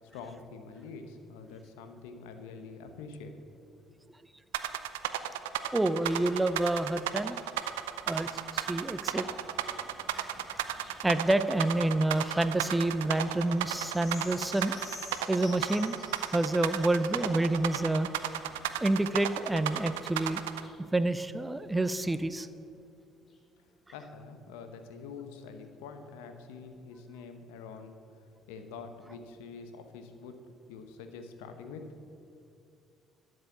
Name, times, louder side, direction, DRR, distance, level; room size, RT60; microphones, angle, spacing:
voice 1, 0.0-3.3 3.7-3.8 23.9-30.3 30.7-32.1, left 5 dB, 75° left, 7 dB, 1.0 m, -46 dB
sound 1, 4.5-20.6, right 13 dB, 80° right, 0.5 m, -33 dB
voice 2, 5.7-7.4 8.1-9.3 10.1-10.6 11.0-14.7 15.3-16.0 16.3-18.1 18.8-20.4 20.9-22.5, right 2 dB, 15° right, 12 dB, 0.6 m, -28 dB
sound 2, 7.2-22.7 23.3-23.4, left 3 dB, 40° left, 2.2 m, -54 dB
12.0 x 6.7 x 7.2 m, 2.5 s
hypercardioid pair, 55°, 0 cm